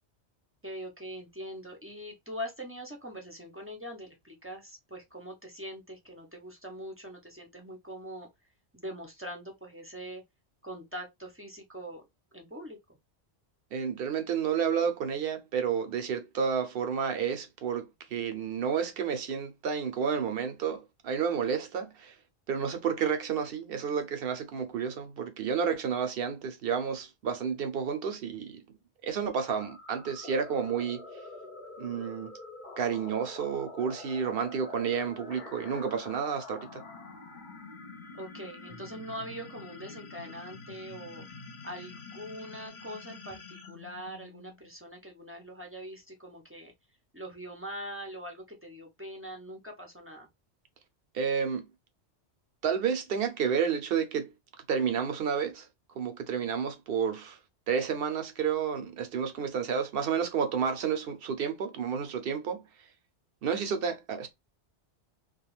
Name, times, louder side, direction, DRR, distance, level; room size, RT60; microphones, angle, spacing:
voice 1, 0.6-8.3 8.7-10.2 10.6-12.0 12.3-12.8 38.1-41.2 41.6-46.7 47.1-50.3, equal, 15° right, 0.5 m, -42 dB
voice 2, 13.7-22.1 22.5-28.6 29.0-31.0 31.8-32.3 32.8-36.8 51.1-51.6 52.6-54.3 54.7-55.7 56.0-57.4 57.7-62.6 63.4-64.3, right 7 dB, 60° right, 0.8 m, -30 dB
sound 1, 29.6-44.7, left 3 dB, 50° left, 0.8 m, -46 dB
2.3 x 2.3 x 3.0 m
omnidirectional pair, 1.2 m